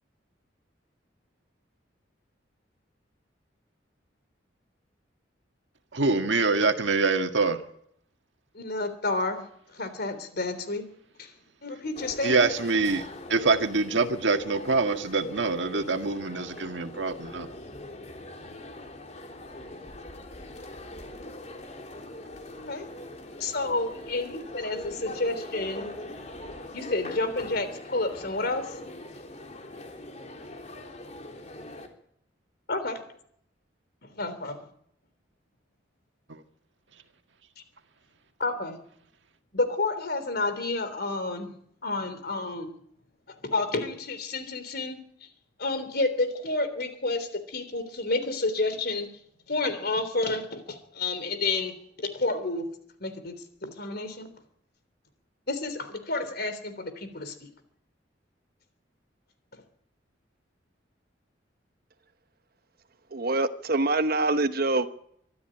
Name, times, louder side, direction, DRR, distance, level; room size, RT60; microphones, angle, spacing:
voice 1, 5.9-7.6 12.2-17.5 36.3-36.4, right 3 dB, 70° right, 6 dB, 1.9 m, -25 dB
voice 2, 8.5-9.4 9.7-10.8 11.2-11.3 11.6-12.5 22.7-22.9 23.4-25.9 26.7-28.8 32.7-33.0 34.0-34.7 38.4-38.8 39.5-41.5 41.8-42.7 43.4-45.0 45.6-49.1 49.5-52.7 53.0-53.3 53.6-54.3 55.5-57.5 59.5-59.6, left 2 dB, 60° left, 11 dB, 3.4 m, -30 dB
sound 1, 11.9-31.9, left 1 dB, 40° left, 3.2 m, -42 dB
voice 3, 63.1-64.9, right 2 dB, 55° right, 10 dB, 1.1 m, -25 dB
24.5 x 13.0 x 9.0 m, 0.71 s
head